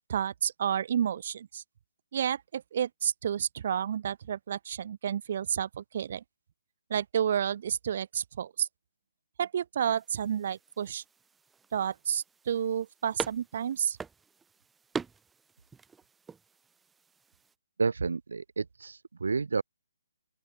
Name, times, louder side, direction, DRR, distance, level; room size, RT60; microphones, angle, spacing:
voice 1, 0.1-1.6 2.1-6.2 6.9-8.7 9.4-11.0 11.7-14.0, right 9 dB, 40° right, 1.9 m, -30 dB
sound 1, 9.8-17.5, right 5 dB, 5° right, 1.4 m, -44 dB
voice 2, 17.8-19.6, right 4 dB, 90° right, 0.6 m, -30 dB
open air
hypercardioid pair, 170°, 0 cm